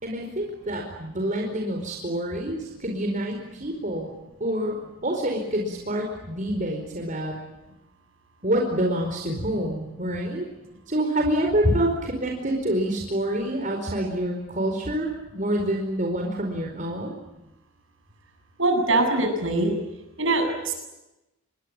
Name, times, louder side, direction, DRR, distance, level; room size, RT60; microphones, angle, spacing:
voice 1, 0.0-4.1 4.4-4.8 5.0-7.3 8.4-10.5 10.9-17.2, right 1 dB, 40° right, 1 dB, 4.7 m, -27 dB
voice 2, 18.6-19.7 20.2-20.7, right 2 dB, 65° right, 5 dB, 7.8 m, -22 dB
28.0 x 22.0 x 9.1 m, 0.96 s
head